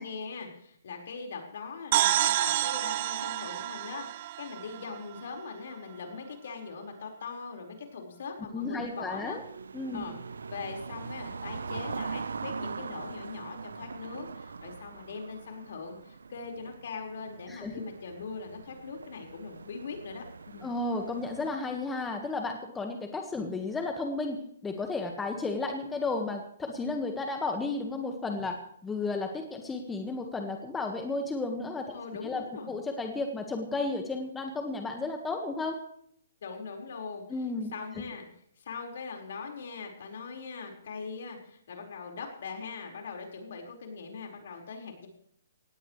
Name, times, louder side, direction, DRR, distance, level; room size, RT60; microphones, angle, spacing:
voice 1, 0.0-9.4 9.9-10.2 10.5-20.7 31.9-32.7 36.4-37.2 37.7-38.3 38.6-45.1, left 5 dB, 65° left, 2 dB, 4.8 m, -41 dB
sound 1, 1.9-5.5, right 14 dB, 40° right, 0.6 m, -29 dB
voice 2, 8.5-9.4 9.7-10.1 17.5-17.8 20.6-28.6 28.8-35.8 37.3-37.7, left 3 dB, 10° left, 4 dB, 1.5 m, -33 dB
sound 2, 8.6-21.5, right 5 dB, 85° right, 0.8 m, -42 dB
18.0 x 17.0 x 3.3 m, 0.67 s
hypercardioid pair, 150°, 0 cm